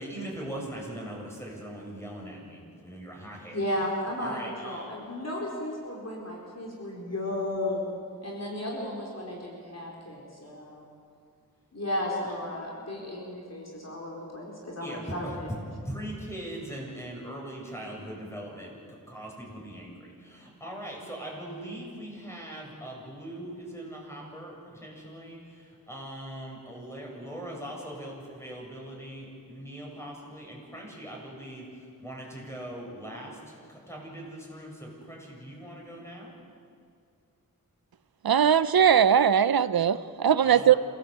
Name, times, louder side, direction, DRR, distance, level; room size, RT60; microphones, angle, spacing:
voice 1, 0.0-3.6 4.2-4.9 14.8-15.3 15.8-18.8 19.1-36.3 40.4-40.8, right 1 dB, 5° left, 7.8 m, -41 dB
voice 2, 3.5-7.9 8.2-10.8 11.7-15.3, left 1 dB, 45° left, 4.6 m, -34 dB
voice 3, 38.2-40.7, right 8 dB, 85° right, 0.7 m, -20 dB
27.0 x 17.5 x 8.3 m
wide cardioid pair, 80°, 35 cm